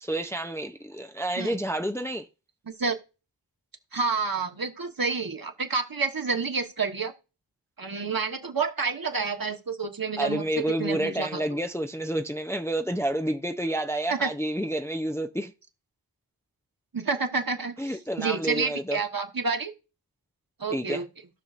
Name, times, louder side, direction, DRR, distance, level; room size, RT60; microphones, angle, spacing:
voice 1, 0.0-2.3 10.2-15.5 17.8-19.0 20.7-21.0, right 1 dB, 5° left, 0.6 m, -29 dB
voice 2, 3.9-7.1 7.8-10.4 10.8-11.4 14.1-14.3 16.9-17.7 18.2-19.7 20.6-21.0, right 4 dB, 55° right, 1.3 m, -29 dB
17.0 x 6.1 x 2.5 m
wide cardioid pair, 60°, 42 cm